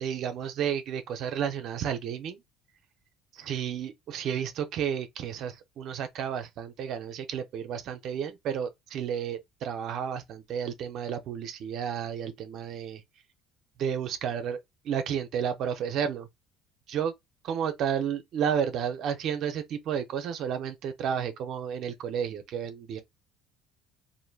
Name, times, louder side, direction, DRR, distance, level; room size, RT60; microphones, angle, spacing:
voice 1, 0.0-2.4 3.3-13.0 13.8-14.6 14.8-16.3 16.9-17.1 17.5-23.0, right 8 dB, 60° right, 0.5 m, -32 dB
3.1 x 2.5 x 2.3 m
supercardioid pair, 90°, 0 cm